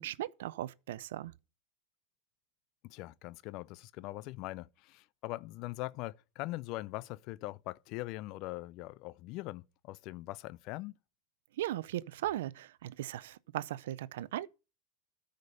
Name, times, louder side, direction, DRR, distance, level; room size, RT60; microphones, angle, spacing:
voice 1, 0.0-1.3 11.6-14.5, right 14 dB, 75° right, 0.5 m, -38 dB
voice 2, 2.8-10.9, left 19 dB, 55° left, 0.5 m, -42 dB
13.0 x 5.2 x 6.5 m
hypercardioid pair, 90°, 0 cm